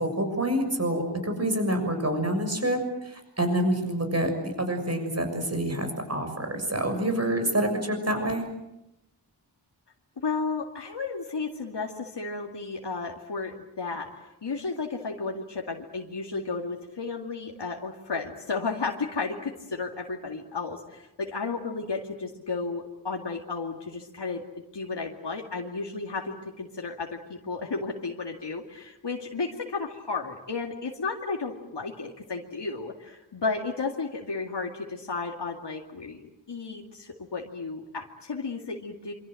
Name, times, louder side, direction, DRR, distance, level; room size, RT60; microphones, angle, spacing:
voice 1, 0.0-8.4, right 1 dB, 35° right, 5 dB, 6.6 m, -27 dB
voice 2, 10.2-24.4 24.7-36.2 36.5-39.1, left 4 dB, 75° left, 1 dB, 2.3 m, -33 dB
27.0 x 25.5 x 7.7 m, 0.89 s
wide cardioid pair, 80°, 42 cm